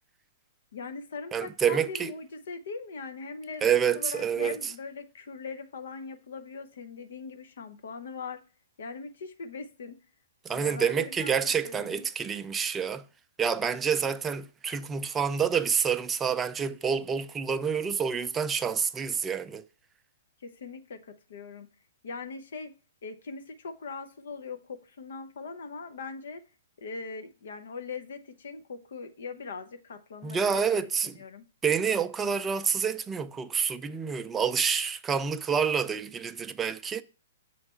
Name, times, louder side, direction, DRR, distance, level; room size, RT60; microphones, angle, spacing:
voice 1, 0.7-8.4 8.8-10.0 10.5-11.4 11.6-12.0 20.4-21.7 22.0-22.7 23.0-26.4 26.8-31.4, left 4 dB, 70° left, 0.7 m, -41 dB
voice 2, 1.3-2.1 3.6-4.7 10.4-13.1 13.4-19.6 30.2-31.1 31.6-37.0, right 7 dB, 15° right, 0.4 m, -28 dB
7.0 x 3.2 x 4.3 m
hypercardioid pair, 130°, 0 cm